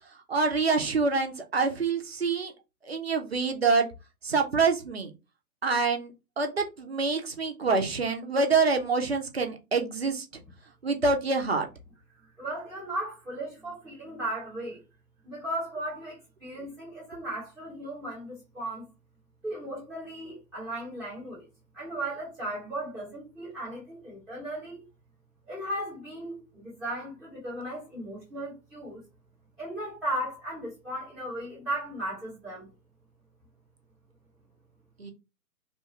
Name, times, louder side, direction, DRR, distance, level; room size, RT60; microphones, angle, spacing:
voice 1, 0.3-2.5 2.8-3.9 4.2-5.1 5.6-10.4 10.8-11.7 35.0-35.1, right 4 dB, 40° right, 0.5 m, -26 dB
voice 2, 12.4-14.8 15.2-16.2 16.4-18.8 19.4-21.4 21.8-24.8 25.5-29.0 29.6-32.7, right 1 dB, ahead, 0.7 m, -36 dB
2.8 x 2.2 x 2.8 m
figure-of-eight pair, 135°, 48 cm